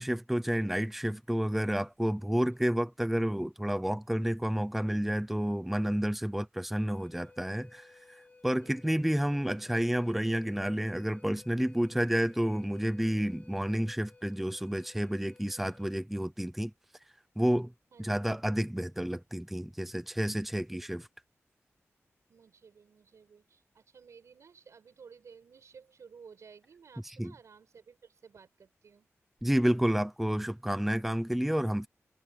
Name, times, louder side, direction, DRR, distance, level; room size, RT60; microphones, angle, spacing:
voice 1, 0.0-16.7 17.4-17.7 18.0-21.0 27.2-27.3 29.4-31.9, equal, 5° right, 0.7 m, -30 dB
voice 2, 2.5-2.9 8.6-9.2 17.9-18.2 20.4-20.9 22.3-29.1, right 6 dB, 80° right, 5.7 m, -55 dB
Wind instrument woodwind instrument, 6.7-16.0, left 3 dB, 30° left, 6.6 m, -58 dB
wide cardioid pair, 145°, 5 cm